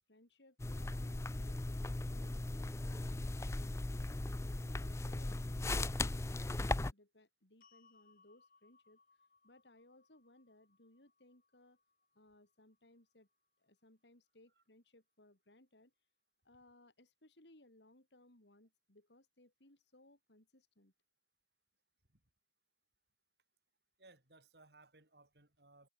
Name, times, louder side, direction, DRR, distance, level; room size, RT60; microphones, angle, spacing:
voice 1, 0.1-2.5 2.9-3.7 4.4-9.0 9.4-11.8 12.1-13.3 13.6-15.9 16.4-20.9, left 1 dB, 90° left, 4.5 m, -65 dB
sound 1, 0.6-6.9, left 2 dB, 15° left, 0.4 m, -38 dB
sound 2, 7.6-13.8, left 4 dB, 50° left, 5.2 m, -72 dB
voice 2, 24.0-25.9, right 2 dB, 70° right, 5.4 m, -63 dB
head